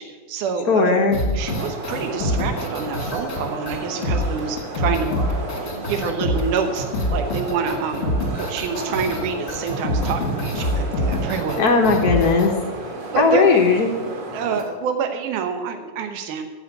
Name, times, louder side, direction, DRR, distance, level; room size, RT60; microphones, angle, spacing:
voice 1, 0.0-1.1 1.3-5.1 5.6-8.1 8.4-11.6 13.1-13.5 14.3-16.4, right 6 dB, 85° right, 5 dB, 2.5 m, -27 dB
voice 2, 0.7-1.2 11.6-12.5 13.2-13.9, left 4 dB, 85° left, 3 dB, 0.8 m, -17 dB
sound 1, 1.1-12.5, left 1 dB, 35° left, 1.1 m, -25 dB
sound 2, 1.4-14.6, right 2 dB, 50° right, 2.8 m, -33 dB
15.0 x 5.3 x 9.2 m, 1.4 s
omnidirectional pair, 3.6 m